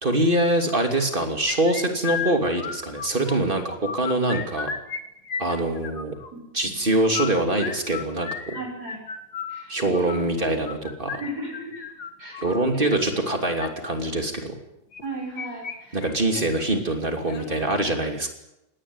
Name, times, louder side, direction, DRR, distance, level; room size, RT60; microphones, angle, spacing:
voice 1, 0.0-4.7 5.4-6.1 6.5-8.6 9.7-11.2 12.4-14.5 15.9-18.3, right 1 dB, 35° right, 5 dB, 3.1 m, -24 dB
sound 1, 1.5-3.4 3.7-5.0 5.3-6.3 7.0-12.6 13.4-13.7 14.9-15.8 16.0-16.1 16.6-16.7 17.3-17.6, left 7 dB, 85° left, 2.4 m, -34 dB
voice 2, 6.3-6.8 8.5-9.0 9.5-10.2 11.2-11.9 12.2-12.4 12.7-12.9 15.0-16.1, right 1 dB, 75° right, -1 dB, 7.2 m, -36 dB
19.5 x 18.5 x 9.7 m, 0.88 s
omnidirectional pair, 1.7 m